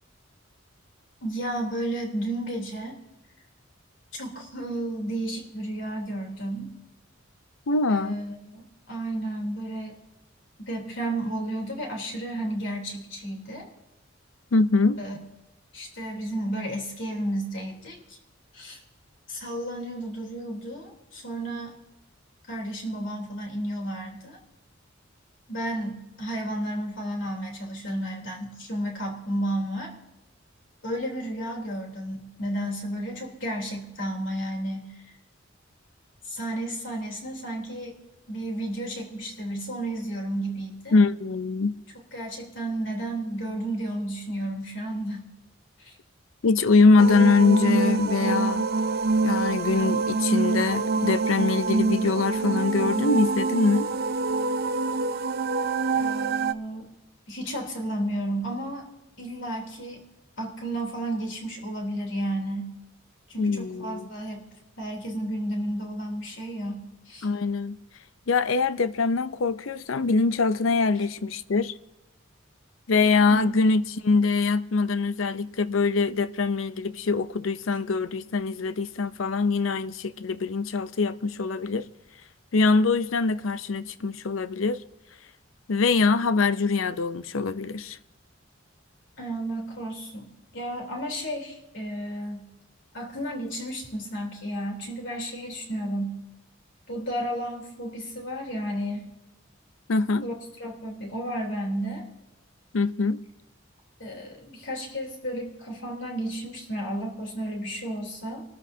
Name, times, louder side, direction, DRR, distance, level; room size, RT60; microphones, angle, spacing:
voice 1, 1.2-3.0 4.1-6.7 7.9-10.0 10.6-13.7 15.0-15.2 15.7-18.2 18.5-18.8 19.3-21.7 22.5-24.4 25.5-29.9 30.8-35.1 36.3-38.0 38.3-40.9 42.1-45.3 45.8-45.9 55.9-56.9 57.3-58.8 59.2-60.0 60.4-62.7 63.3-64.4 64.8-67.3 73.3-73.5 89.2-92.5 92.9-96.2 96.9-99.1 100.2-100.3 100.6-102.0 104.0-108.4, right 1 dB, 65° left, 3.4 m, -32 dB
voice 2, 7.7-8.2 14.5-15.0 40.9-41.8 46.4-48.7 49.2-53.9 63.4-64.1 67.2-67.8 68.3-71.7 72.9-81.9 82.5-84.8 85.7-88.0 99.9-100.3 102.7-103.2, left 4 dB, 85° left, 0.6 m, -23 dB
sound 1, 47.0-56.5, right 3 dB, 50° right, 0.5 m, -25 dB
25.5 x 13.5 x 2.8 m
head